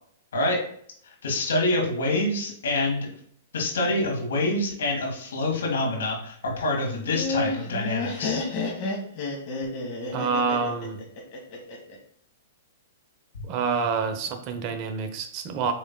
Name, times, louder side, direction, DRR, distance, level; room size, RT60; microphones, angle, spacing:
voice 1, 1.0-3.1 3.5-8.4, left 2 dB, 75° left, 0 dB, 1.8 m, -26 dB
Laughter, 6.9-12.0, left 3 dB, 45° left, 1.5 m, -31 dB
voice 2, 10.1-11.0 13.4-15.7, right 5 dB, 40° right, 7 dB, 0.7 m, -27 dB
7.6 x 3.1 x 2.2 m, 0.63 s
hypercardioid pair, 120°, 0 cm